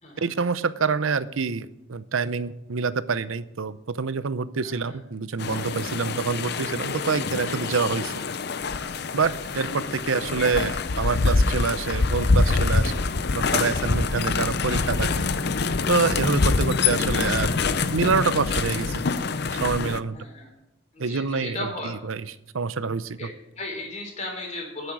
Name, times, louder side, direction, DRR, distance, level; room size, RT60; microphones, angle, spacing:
voice 1, 0.2-8.1 9.1-15.2 15.9-17.6 17.9-19.0 19.6-20.2 21.0-22.2 22.5-23.3, right 5 dB, 80° right, 15 dB, 0.7 m, -26 dB
voice 2, 4.6-5.0 9.2-9.4 20.1-20.5 20.9-21.9 23.2-24.9, left 2 dB, 35° left, 1 dB, 3.9 m, -36 dB
sound 1, 5.4-20.0, left 4 dB, 50° left, 0.6 m, -25 dB
10.0 x 8.2 x 8.8 m, 0.86 s
head